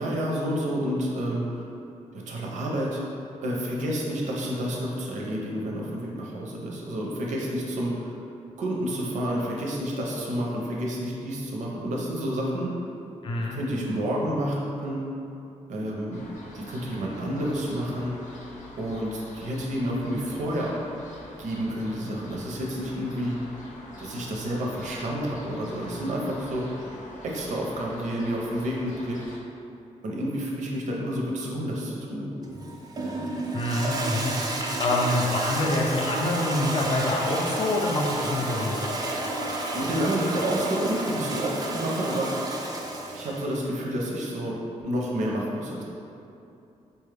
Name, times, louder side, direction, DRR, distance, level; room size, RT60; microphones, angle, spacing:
voice 1, 0.0-1.6 2.3-3.0 3.4-8.1 8.6-12.7 13.5-15.0 15.7-16.2 16.5-18.1 18.8-20.7 21.4-23.4 24.0-26.6 27.2-29.2 30.0-32.3 39.7-42.3 43.1-45.8, equal, 75° right, -3 dB, 0.6 m, -29 dB
voice 2, 13.2-13.6 33.5-34.3 34.8-38.9, left 1 dB, 40° left, -1 dB, 0.3 m, -26 dB
sound 1, 16.1-29.4, left 1 dB, 85° left, 0.6 m, -45 dB
Toilet flush, 32.4-43.5, right 2 dB, 30° right, 0.3 m, -31 dB
4.3 x 2.3 x 3.3 m, 2.7 s
wide cardioid pair, 165°, 13 cm